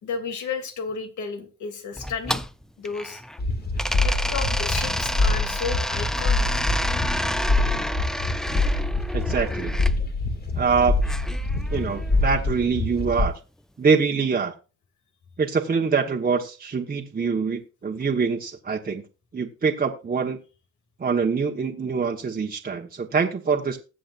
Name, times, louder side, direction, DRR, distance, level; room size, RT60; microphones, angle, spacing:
voice 1, 0.0-2.5 2.8-3.2 4.0-6.7, left 5 dB, 75° left, 5 dB, 2.8 m, -33 dB
sound 1, 2.0-3.4 3.8-9.9 11.0-12.2, equal, ahead, 0.5 m, -30 dB
sound 2, 3.4-13.3, left 2 dB, 35° left, 2.1 m, -25 dB
voice 2, 9.1-9.7 10.5-10.9 11.7-13.3 13.8-14.5 15.4-19.0 19.3-20.4 21.0-23.8, right 5 dB, 30° right, 0 dB, 1.3 m, -24 dB
20.5 x 7.6 x 2.5 m, 0.32 s
cardioid pair, 90°, 30 cm